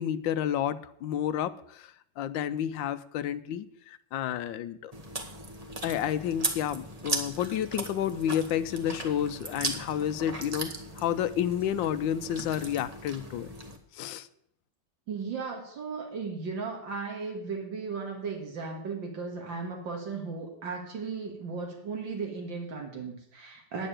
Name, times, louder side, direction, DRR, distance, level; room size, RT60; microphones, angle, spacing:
voice 1, 0.0-4.9 5.8-13.5 13.9-14.3, left 10 dB, 80° left, 14 dB, 1.3 m, -30 dB
Chewing mastication, 4.9-13.8, right 2 dB, 25° right, 1.1 m, -37 dB
voice 2, 15.1-23.9, right 4 dB, 80° right, 1 dB, 2.5 m, -36 dB
9.8 x 6.7 x 8.9 m, 0.72 s
omnidirectional pair, 2.0 m